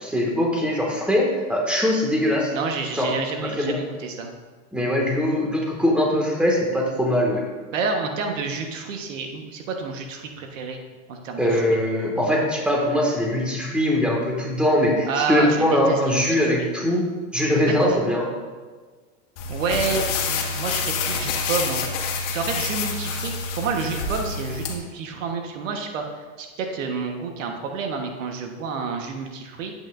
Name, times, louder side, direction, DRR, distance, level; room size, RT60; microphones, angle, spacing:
voice 1, 0.1-2.5 2.9-3.1 3.6-3.8 4.7-7.4 11.4-17.0 17.3-18.3, left 1 dB, 5° right, -2 dB, 1.9 m, -21 dB
voice 2, 2.5-4.3 7.7-10.8 11.1-11.6 15.1-16.7 17.7-18.0 19.5-21.9 22.3-29.7, right 4 dB, 85° right, 3 dB, 1.4 m, -29 dB
sound 1, 19.4-24.7, left 4 dB, 65° left, 1.7 m, -27 dB
11.0 x 8.6 x 2.6 m, 1.4 s
supercardioid pair, 130°, 37 cm